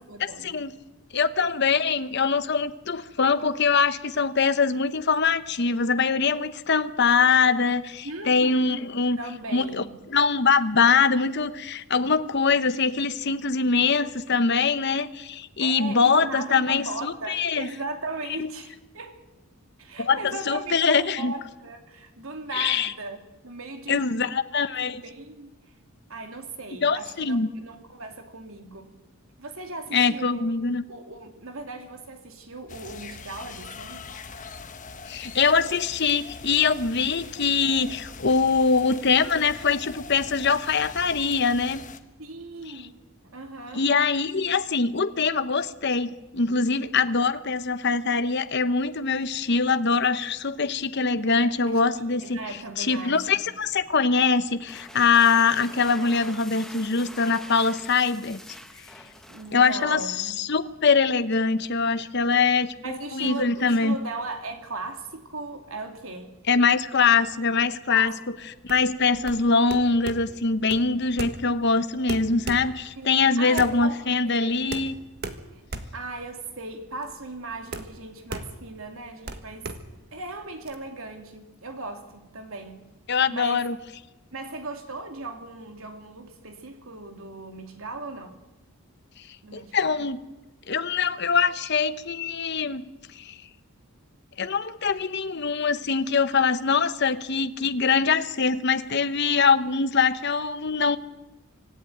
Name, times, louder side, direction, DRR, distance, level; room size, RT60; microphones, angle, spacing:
voice 1, 0.1-0.6 8.0-8.8 9.2-9.9 15.6-19.2 19.8-24.4 24.8-25.5 26.1-28.9 29.4-30.5 30.9-34.1 42.2-43.0 43.2-43.8 51.7-53.5 59.3-60.4 62.8-66.4 67.9-68.2 73.0-74.0 74.2-74.6 75.9-79.7 80.1-82.8 83.3-83.6 84.3-88.4 89.4-89.9, right 2 dB, 65° right, 2.8 m, -37 dB
voice 2, 1.1-9.2 9.5-17.7 18.4-18.5 20.0-21.3 22.5-22.9 23.9-25.0 26.8-27.5 29.9-30.8 35.1-41.8 43.7-52.4 52.8-58.4 59.5-64.0 66.5-68.1 68.6-74.9 83.1-83.8 89.5-90.2 90.7-92.9 93.2-93.4 94.4-101.0, left 5 dB, 50° left, 0.9 m, -23 dB
sound 1, 32.7-42.0, left 4 dB, 35° left, 1.2 m, -42 dB
sound 2, 54.5-60.1, left 1 dB, ahead, 1.2 m, -45 dB
sound 3, 68.6-80.7, right 2 dB, 45° right, 1.6 m, -38 dB
25.5 x 14.5 x 9.3 m
head